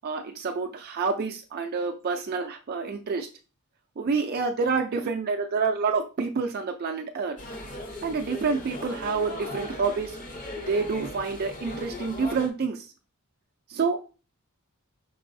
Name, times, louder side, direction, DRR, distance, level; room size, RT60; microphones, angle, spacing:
voice 1, 0.0-3.3 4.0-7.4 8.0-10.2 10.7-12.9 13.7-14.0, right 4 dB, 45° right, 4 dB, 0.4 m, -28 dB
sound 1, 7.4-12.5, left 1 dB, 35° left, 0.8 m, -38 dB
5.3 x 3.9 x 2.6 m, 0.35 s
head